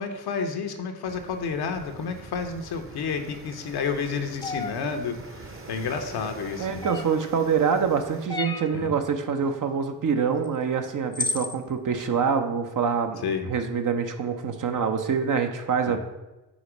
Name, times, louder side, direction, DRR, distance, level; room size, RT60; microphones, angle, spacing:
voice 1, 0.0-6.8 8.7-8.9 13.2-13.5 15.9-16.0, left 5 dB, 65° left, 6 dB, 0.9 m, -30 dB
sound 1, 1.0-8.3, right 3 dB, 30° right, 1.0 m, -45 dB
sound 2, 4.4-4.8 6.8-7.3 8.3-8.8 10.4-10.5 11.1-11.6, left 2 dB, 10° left, 0.6 m, -30 dB
voice 2, 6.6-13.2 13.5-16.0, right 6 dB, 50° right, 6 dB, 0.8 m, -25 dB
5.1 x 4.1 x 5.0 m, 1.0 s
hypercardioid pair, 45°, 41 cm